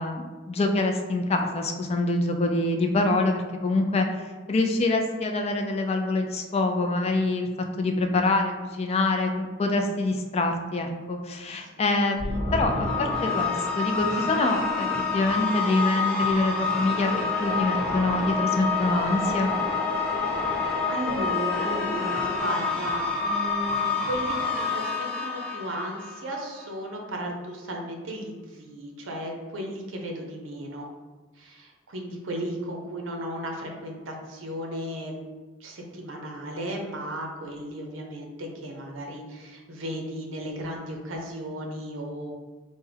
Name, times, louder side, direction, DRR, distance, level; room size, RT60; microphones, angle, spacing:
voice 1, 0.0-7.5 7.8-14.9 15.1-17.1 17.4-19.5, left 2 dB, 30° left, 4 dB, 0.3 m, -25 dB
voice 2, 11.5-11.8 20.0-30.9 31.4-35.2 35.6-42.3, right 1 dB, 75° right, 1 dB, 0.6 m, -35 dB
sound 1, 12.2-26.5, left 4 dB, 5° left, 0.7 m, -27 dB
3.4 x 2.1 x 3.3 m, 1.3 s
head